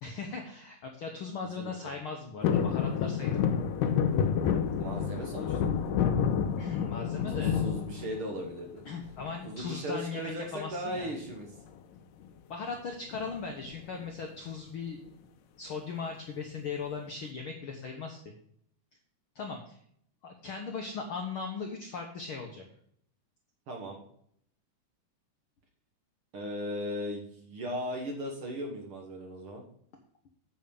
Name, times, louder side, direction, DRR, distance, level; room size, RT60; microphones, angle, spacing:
voice 1, 0.0-3.4 6.6-7.6 8.8-11.1 12.5-15.0 15.6-18.2 19.3-19.8 20.2-22.6, left 5 dB, 65° left, 2 dB, 1.3 m, -38 dB
sound 1, 2.4-8.6 9.0-9.6 10.9-11.3 11.6-11.7 12.0-12.3 13.1-14.0 14.5-14.6, left 7 dB, 85° left, 2.4 m, -29 dB
voice 2, 4.8-5.7 7.3-8.8 9.4-11.5 23.7-24.0 26.3-29.6, equal, 55° right, 1 dB, 1.8 m, -37 dB
9.1 x 5.2 x 7.0 m, 0.66 s
omnidirectional pair, 3.8 m